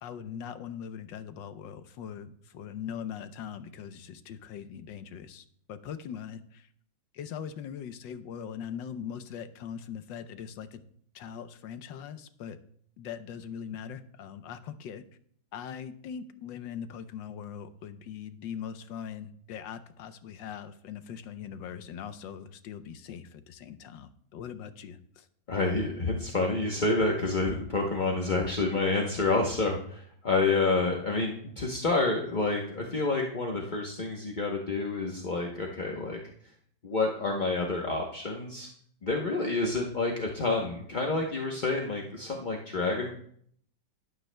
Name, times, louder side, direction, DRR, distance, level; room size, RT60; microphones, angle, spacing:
voice 1, 0.0-6.7 7.1-10.8 11.1-12.6 13.0-15.0 15.5-25.3, left 8 dB, 75° left, 11 dB, 1.4 m, -41 dB
voice 2, 25.5-36.2 36.8-38.7 39.0-43.1, left 3 dB, 40° left, 0 dB, 0.7 m, -28 dB
12.5 x 12.0 x 2.2 m, 0.64 s
omnidirectional pair, 2.1 m